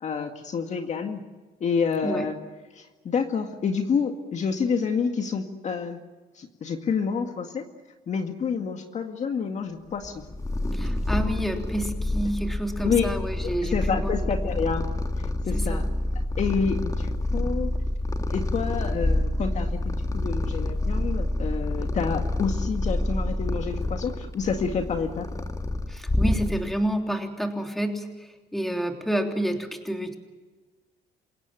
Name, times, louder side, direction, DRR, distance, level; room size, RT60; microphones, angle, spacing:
voice 1, 0.0-1.2 1.6-2.4 2.7-6.0 6.4-7.6 8.1-10.2 12.8-13.0 13.4-14.8 15.5-15.8 16.4-17.7 18.3-25.3, left 6 dB, 45° left, 5 dB, 2.0 m, -28 dB
Purr, 10.0-26.9, left 1 dB, 20° left, 2.2 m, -28 dB
voice 2, 10.7-14.5 15.5-15.8 25.9-30.2, right 1 dB, ahead, 3 dB, 3.3 m, -29 dB
28.0 x 17.0 x 9.1 m, 1.3 s
cardioid pair, 110°, 17 cm